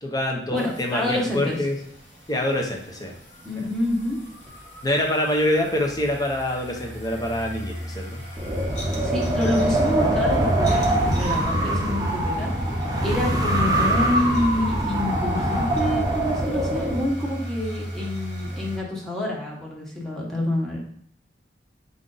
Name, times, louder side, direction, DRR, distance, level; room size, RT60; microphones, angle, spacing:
voice 1, 0.0-1.8 2.3-3.1 4.8-8.2 13.3-13.4, left 1 dB, 20° left, 1 dB, 0.8 m, -25 dB
voice 2, 0.5-1.6 3.4-4.2 9.0-12.5 13.0-20.8, left 1 dB, 5° left, -4 dB, 1.1 m, -27 dB
sound 1, 0.6-18.8, equal, 45° left, 1.1 m, -35 dB
Wind, 8.4-17.1, right 1 dB, 20° right, 0.7 m, -23 dB
4.8 x 2.6 x 3.9 m, 0.68 s
head